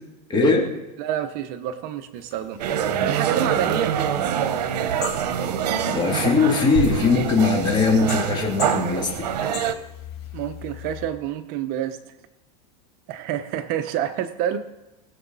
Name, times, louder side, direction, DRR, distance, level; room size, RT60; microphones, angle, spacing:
voice 1, 0.3-0.7 5.9-9.3, left 4 dB, 20° left, 0 dB, 2.6 m, -20 dB
voice 2, 1.0-2.6 3.1-3.9 10.3-12.0 13.1-14.6, right 10 dB, 45° right, 9 dB, 0.7 m, -28 dB
sound 1, 2.1-11.1, left 10 dB, 65° left, 5.4 m, -41 dB
sound 2, 2.6-9.7, right 9 dB, 80° right, 1.0 m, -25 dB
20.0 x 7.0 x 4.0 m, 0.99 s
supercardioid pair, 135°, 21 cm